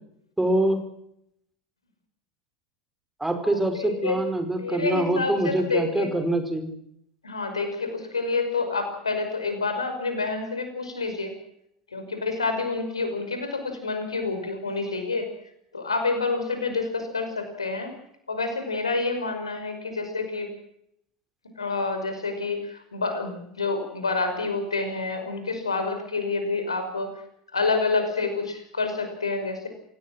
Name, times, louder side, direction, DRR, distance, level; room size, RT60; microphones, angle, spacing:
voice 1, 0.4-0.8 3.2-6.7, right 1 dB, 10° right, 7 dB, 4.9 m, -25 dB
voice 2, 3.4-4.2 4.6-6.1 7.2-11.3 11.9-15.3 15.7-17.9 18.3-20.5 21.6-27.1 27.5-29.7, left 3 dB, 85° left, 7 dB, 5.6 m, -28 dB
28.0 x 17.5 x 6.3 m, 0.74 s
figure-of-eight pair, 80°, 3 cm